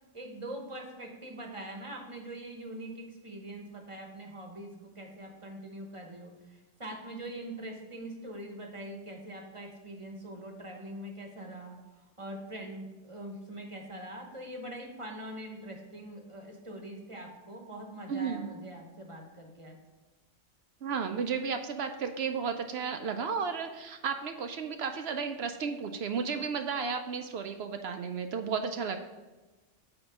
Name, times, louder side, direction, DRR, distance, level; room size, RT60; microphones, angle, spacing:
voice 1, 0.1-19.8, right 1 dB, 25° right, 2 dB, 1.0 m, -43 dB
voice 2, 18.1-18.5 20.8-29.0, right 6 dB, 65° right, 7 dB, 0.7 m, -33 dB
8.7 x 3.0 x 6.2 m, 1.2 s
omnidirectional pair, 1.3 m